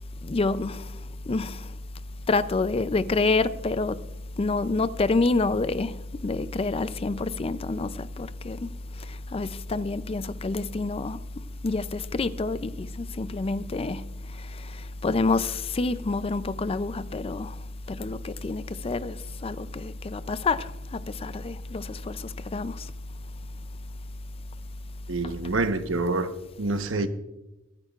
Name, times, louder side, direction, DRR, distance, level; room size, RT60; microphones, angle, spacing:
voice 1, 0.2-1.8 2.3-4.1 4.4-22.9 25.2-25.5, left 3 dB, 30° left, 0.4 m, -28 dB
voice 2, 25.1-27.1, right 2 dB, 90° right, 1.0 m, -27 dB
22.5 x 10.5 x 2.4 m
head